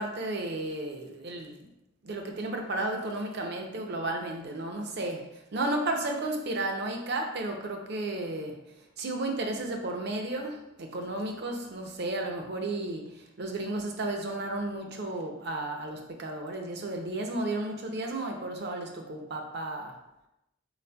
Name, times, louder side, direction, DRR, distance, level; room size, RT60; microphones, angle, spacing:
voice 1, 0.0-1.7 2.0-8.6 9.0-20.0, right 2 dB, 55° right, 0.6 m, -33 dB
4.3 x 4.0 x 2.2 m
head